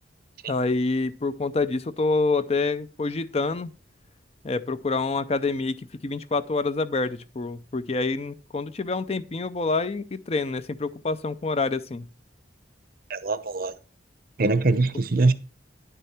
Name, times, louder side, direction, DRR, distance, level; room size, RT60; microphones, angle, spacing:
voice 1, 0.5-3.7 4.4-12.1, left 3 dB, 35° left, 0.5 m, -27 dB
voice 2, 13.1-13.7 14.4-15.3, right 3 dB, 50° right, 0.7 m, -22 dB
10.0 x 6.8 x 4.3 m
head